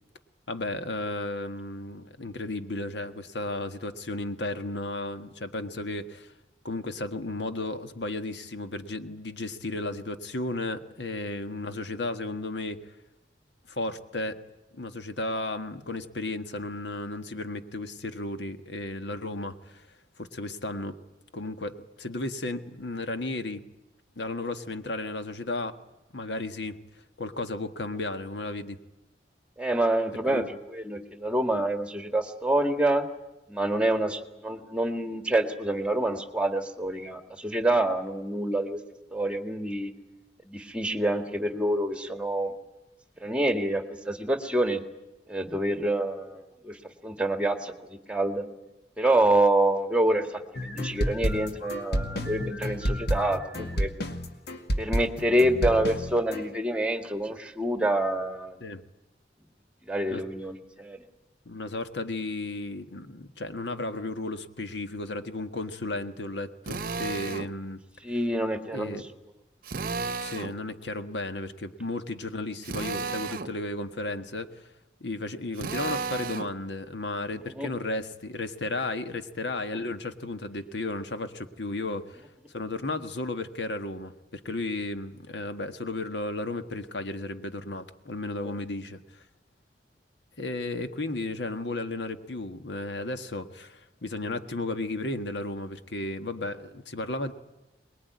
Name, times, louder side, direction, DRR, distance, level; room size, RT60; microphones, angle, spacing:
voice 1, 0.5-6.3 6.6-12.9 13.7-14.4 14.7-19.8 20.2-21.0 21.3-23.6 24.1-25.8 26.1-26.8 27.2-28.8 30.3-30.5 58.6-58.8 60.1-60.2 61.4-67.8 68.7-69.0 70.2-74.7 75.0-82.2 82.5-89.2 90.4-97.3, left 2 dB, 85° left, 8 dB, 1.6 m, -34 dB
voice 2, 29.6-33.0 33.5-38.8 39.1-39.9 40.5-42.5 43.2-44.8 45.3-46.8 47.0-48.5 49.0-53.9 54.8-58.6 59.9-61.0 68.0-69.0 77.6-77.7 88.5-88.6, right 1 dB, 5° right, 7 dB, 1.9 m, -27 dB
sound 1, 50.6-56.4, equal, 65° left, 2.1 m, -30 dB
Drill, 66.7-67.5 69.6-70.6 72.6-73.5 75.6-76.5, right 4 dB, 55° right, 0.8 m, -33 dB
23.5 x 21.0 x 9.4 m, 0.98 s
head